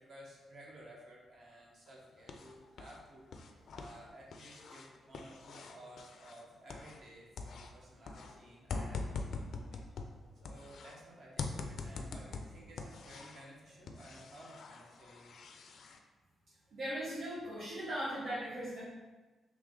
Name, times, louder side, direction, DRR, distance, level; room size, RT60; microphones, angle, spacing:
voice 1, 0.0-9.8 10.4-15.4, right 1 dB, 45° right, -3 dB, 0.9 m, -55 dB
sound 1, 1.9-3.0 3.3-7.1 7.4-11.0 11.4-13.5 13.9-16.0, left 4 dB, 60° left, 0.3 m, -44 dB
voice 2, 16.7-18.8, equal, 85° right, -13 dB, 1.4 m, -38 dB
3.6 x 3.0 x 3.7 m, 1.2 s
wide cardioid pair, 165°, 0 cm